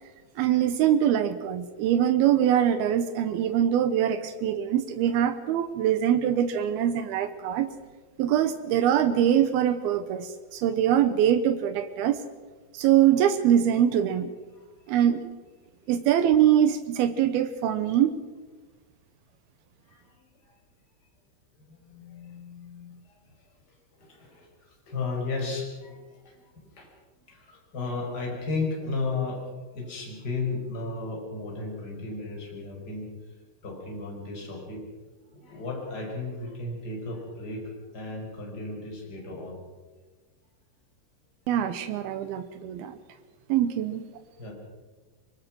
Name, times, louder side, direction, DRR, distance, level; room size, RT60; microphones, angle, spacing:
voice 1, 0.4-7.7 8.2-12.2 12.7-14.3 14.9-15.3 15.9-18.1 41.5-42.9 43.5-44.0, right 10 dB, 85° right, 11 dB, 2.2 m, -23 dB
voice 2, 19.9-20.6 21.6-23.4 24.0-26.9 27.3-29.4 29.7-33.3 33.6-34.8 35.2-39.6 44.2-44.5, left 3 dB, 20° left, 0 dB, 5.6 m, -35 dB
25.0 x 22.0 x 6.2 m, 1.3 s
omnidirectional pair, 5.7 m